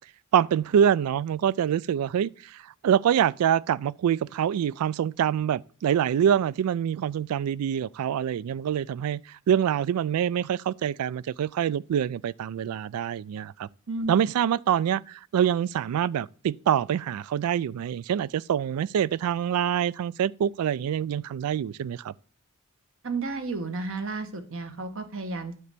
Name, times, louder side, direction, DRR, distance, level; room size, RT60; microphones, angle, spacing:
voice 1, 0.3-9.2 9.5-13.7 14.1-22.1, right 9 dB, 85° right, 0.3 m, -25 dB
voice 2, 23.0-25.5, right 3 dB, 65° right, 1.2 m, -32 dB
9.4 x 3.3 x 6.6 m
head